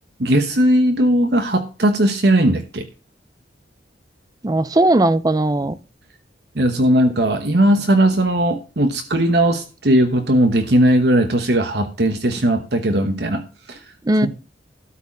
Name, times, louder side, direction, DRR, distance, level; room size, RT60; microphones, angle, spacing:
voice 1, 0.2-2.9 6.5-13.9, right 1 dB, 60° right, 1.1 m, -18 dB
voice 2, 4.4-5.8 14.0-14.3, right 1 dB, 20° right, 0.5 m, -17 dB
13.0 x 4.6 x 7.3 m
head